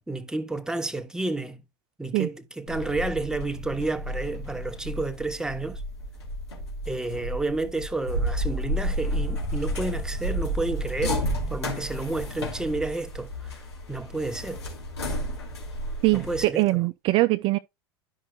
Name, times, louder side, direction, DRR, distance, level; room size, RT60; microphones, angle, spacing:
voice 1, 0.0-1.6 2.0-5.8 6.9-11.2 11.5-13.6 13.9-14.6 16.1-16.8, right 2 dB, 5° right, 1.0 m, -30 dB
sound 1, 2.7-16.5, equal, 85° left, 2.7 m, -31 dB
voice 2, 16.0-17.6, right 20 dB, 40° right, 0.4 m, -22 dB
12.0 x 5.5 x 2.3 m
figure-of-eight pair, 80°, 13 cm